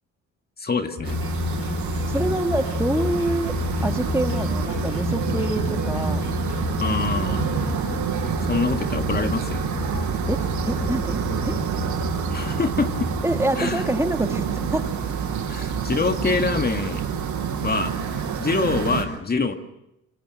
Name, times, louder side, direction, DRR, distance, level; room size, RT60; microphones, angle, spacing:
voice 1, 0.6-1.2 6.8-7.5 8.4-9.6 12.3-13.1 13.6-13.8 15.5-17.0 17.6-17.9 18.4-19.5, left 4 dB, 30° left, 6 dB, 1.9 m, -25 dB
sound 1, 1.0-13.4, left 3 dB, 55° left, 4.8 m, -30 dB
sound 2, 1.0-19.1, right 7 dB, 80° right, 6.4 m, -28 dB
voice 2, 2.1-3.5 3.8-6.2 10.3-11.6 13.2-14.5 14.7-14.9 16.3-16.4, right 1 dB, 10° right, 5 dB, 2.1 m, -26 dB
26.0 x 25.0 x 6.2 m, 0.87 s
cardioid pair, 90°, 30 cm